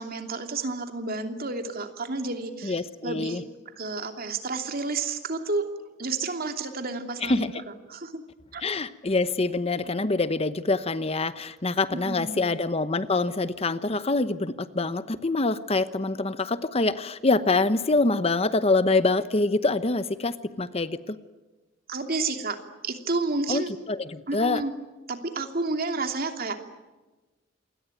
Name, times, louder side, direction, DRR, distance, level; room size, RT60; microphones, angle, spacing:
voice 1, 0.0-3.4 3.8-5.7 6.0-7.4 7.9-8.2 8.5-8.6 11.9-12.5 21.9-22.6 22.8-23.7 24.3-24.7 25.1-26.6, right 3 dB, 50° right, 6 dB, 2.9 m, -30 dB
voice 2, 2.6-3.4 7.2-7.5 8.6-21.2 23.5-24.6, left 3 dB, 30° left, 13 dB, 0.9 m, -25 dB
27.5 x 22.0 x 9.2 m, 1.2 s
head